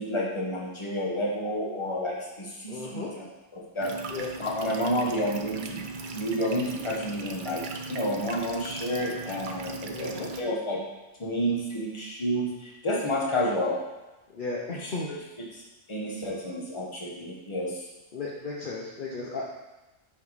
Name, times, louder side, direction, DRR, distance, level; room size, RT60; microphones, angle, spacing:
voice 1, 0.0-3.3 3.5-3.9 4.4-5.8 6.1-10.8 11.2-13.8 14.8-14.9 15.5-15.6 15.9-17.8, equal, 25° left, -3 dB, 1.1 m, -30 dB
voice 2, 2.7-3.1 4.1-4.3 9.9-10.3 14.3-15.1 18.1-19.4, left 3 dB, 50° left, -3 dB, 0.9 m, -35 dB
sound 1, 3.8-10.4, right 3 dB, 55° right, 0.6 m, -38 dB
5.7 x 5.0 x 4.0 m, 1.1 s
omnidirectional pair, 1.2 m